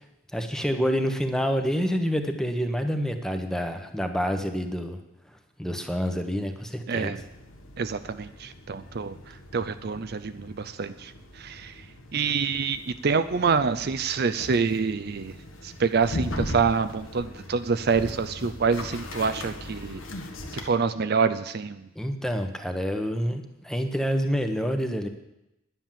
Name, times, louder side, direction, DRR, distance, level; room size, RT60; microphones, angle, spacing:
voice 1, 0.3-5.0 5.6-7.1 22.0-25.1, equal, 5° left, 6 dB, 1.1 m, -27 dB
voice 2, 6.9-7.2 7.8-11.7 12.1-15.4 15.6-20.0 20.5-21.9, right 5 dB, 50° right, 11 dB, 0.5 m, -26 dB
sound 1, 7.2-20.7, left 1 dB, 85° left, 1.7 m, -39 dB
10.5 x 10.0 x 7.5 m, 0.88 s
head